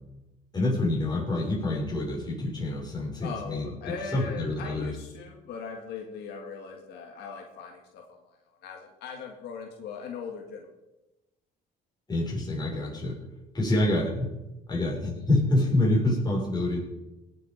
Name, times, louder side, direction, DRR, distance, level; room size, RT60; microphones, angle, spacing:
voice 1, 0.5-3.7 4.0-4.9 12.1-13.2 13.5-14.3 14.7-16.8, left 2 dB, 25° left, -2 dB, 5.7 m, -26 dB
voice 2, 3.2-8.4 8.6-10.7, left 5 dB, 75° left, 2 dB, 1.9 m, -40 dB
17.5 x 7.2 x 5.2 m, 1.0 s
cardioid pair, 110°, 17 cm